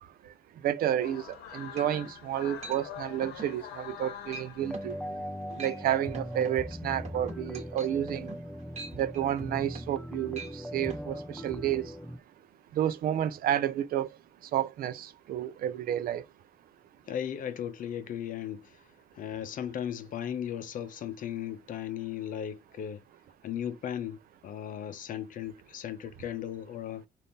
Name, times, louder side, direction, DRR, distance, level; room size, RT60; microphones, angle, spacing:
voice 1, 0.6-5.0 5.6-8.3 8.9-11.9 12.8-14.1 14.5-16.2, right 11 dB, 60° right, 0.5 m, -30 dB
sound 1, 1.0-5.4, left 10 dB, 80° left, 0.9 m, -45 dB
sound 2, 1.3-1.4 1.8-2.2 2.6-2.8 3.2-3.6 3.9-4.1 4.3-4.5 4.7-5.0 5.4-5.8 6.1-10.0 10.3-10.5 10.9-11.0, right 4 dB, 40° right, 1.2 m, -44 dB
sound 3, 4.6-12.2, equal, 5° left, 0.4 m, -39 dB
voice 2, 17.1-18.8 19.1-23.0 23.4-27.0, left 9 dB, 55° left, 0.7 m, -36 dB
4.1 x 2.6 x 3.5 m
cardioid pair, 110°, 17 cm